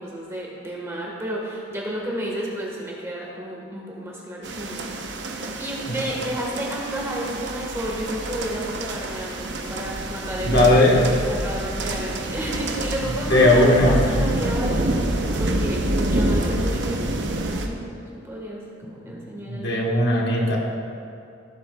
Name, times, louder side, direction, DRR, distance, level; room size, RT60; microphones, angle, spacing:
voice 1, 0.0-5.2 5.6-19.7, equal, 15° right, -3 dB, 1.5 m, -32 dB
sound 1, 4.4-17.7, right 1 dB, 55° right, 0.8 m, -27 dB
voice 2, 10.4-11.1 13.1-14.0 19.5-20.6, left 1 dB, 55° left, -2 dB, 1.4 m, -18 dB
17.0 x 8.6 x 2.3 m, 2.6 s
head